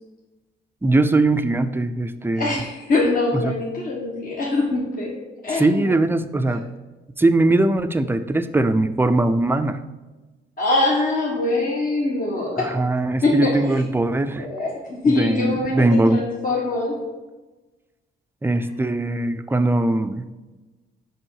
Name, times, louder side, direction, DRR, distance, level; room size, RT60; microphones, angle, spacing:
voice 1, 0.8-2.5 3.3-3.5 5.6-6.6 7.2-9.8 12.6-14.5 15.1-16.2 18.4-20.3, right 2 dB, 10° right, 10 dB, 0.4 m, -20 dB
voice 2, 2.3-5.9 6.5-6.6 10.6-12.7 13.2-13.8 14.4-17.0 18.6-18.7, left 2 dB, 45° left, -4 dB, 1.4 m, -23 dB
6.1 x 5.3 x 4.7 m, 1.2 s
cardioid pair, 90°, 20 cm